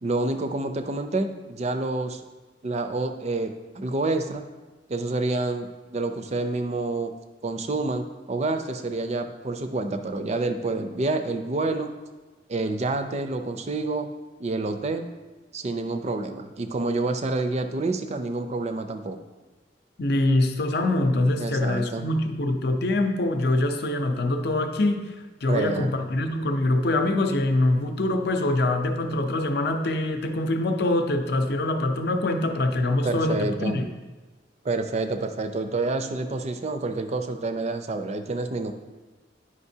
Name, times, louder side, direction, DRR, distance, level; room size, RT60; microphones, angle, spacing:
voice 1, 0.0-2.2 2.6-4.5 4.9-7.1 7.4-11.9 12.5-14.1 14.4-15.1 15.5-19.2 21.4-22.0 25.5-25.9 33.0-33.8 34.6-38.7, right 2 dB, 35° right, 7 dB, 0.5 m, -28 dB
voice 2, 20.0-33.9, left 2 dB, 60° left, 6 dB, 0.6 m, -24 dB
9.7 x 5.1 x 2.7 m, 1.2 s
head